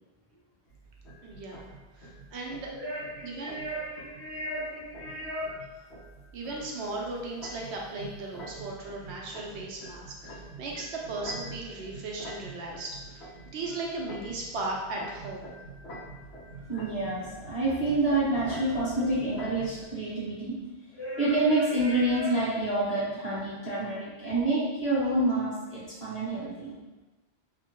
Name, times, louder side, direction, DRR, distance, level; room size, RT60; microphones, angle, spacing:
sound 1, 0.7-19.9, right 1 dB, 85° left, 0.9 m, -46 dB
voice 1, 1.2-2.7 3.2-3.6 6.3-13.3 13.5-15.5, right 2 dB, 85° right, -1 dB, 0.9 m, -37 dB
voice 2, 2.8-5.4 16.7-20.6 20.9-26.7, right 2 dB, 35° left, -9 dB, 1.1 m, -28 dB
2.9 x 2.1 x 2.9 m, 1.1 s
omnidirectional pair, 1.1 m